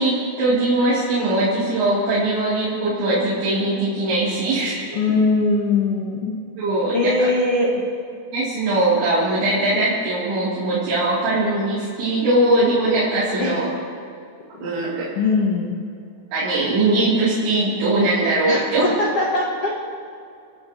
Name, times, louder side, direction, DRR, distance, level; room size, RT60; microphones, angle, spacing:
voice 1, 0.0-4.8 6.6-7.1 8.3-13.7 14.6-15.1 16.3-18.8, right 2 dB, 85° right, -10 dB, 5.3 m, -20 dB
voice 2, 4.9-6.4 6.9-7.8 13.4-13.5 15.2-15.8 18.5-18.6 19.0-19.7, left 3 dB, 55° left, -4 dB, 1.7 m, -21 dB
28.0 x 14.5 x 3.0 m, 2.4 s
omnidirectional pair, 5.0 m